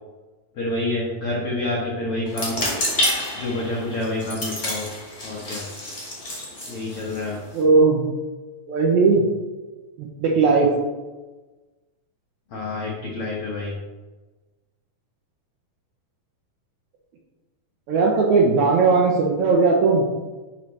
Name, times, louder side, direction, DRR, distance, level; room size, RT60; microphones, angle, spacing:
voice 1, 0.5-2.6 3.4-4.9 5.2-5.6 6.2-7.4 12.5-13.7, left 2 dB, 75° left, -3 dB, 1.3 m, -28 dB
sound 1, 2.3-7.6, left 1 dB, 25° left, 1.6 m, -29 dB
voice 2, 7.5-8.1 8.7-9.3 10.0-10.7 17.9-20.0, right 4 dB, 75° right, -1 dB, 1.8 m, -18 dB
10.5 x 4.6 x 3.1 m, 1.2 s
omnidirectional pair, 4.2 m